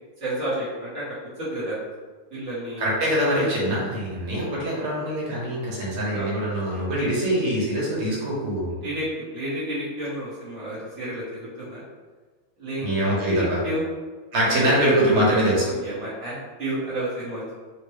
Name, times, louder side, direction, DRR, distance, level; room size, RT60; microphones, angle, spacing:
voice 1, 0.2-1.0 1.4-1.8 2.3-2.9 3.3-3.5 4.7-4.9 5.3-5.4 6.1-6.3 8.8-11.8 12.6-12.9 13.3-13.8 14.4-14.8 15.0-17.5, right 1 dB, 50° right, -9 dB, 0.9 m, -31 dB
voice 2, 2.8-8.8 12.8-13.6 14.3-15.7, right 1 dB, 80° right, -5 dB, 1.9 m, -23 dB
4.2 x 2.1 x 3.1 m, 1.4 s
omnidirectional pair, 2.3 m